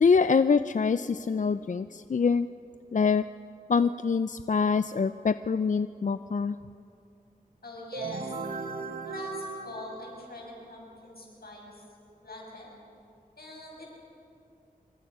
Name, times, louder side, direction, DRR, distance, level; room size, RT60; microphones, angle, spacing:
voice 1, 0.0-2.5 2.9-3.2 3.7-6.6, left 5 dB, 55° left, 12 dB, 0.4 m, -25 dB
voice 2, 7.6-8.4 9.0-11.8 12.2-12.7 13.4-13.9, left 1 dB, 85° left, -2 dB, 6.7 m, -43 dB
sound 1, 7.9-10.6, right 4 dB, 65° right, 1.0 m, -37 dB
25.5 x 24.0 x 5.5 m, 2.6 s
wide cardioid pair, 80°, 16 cm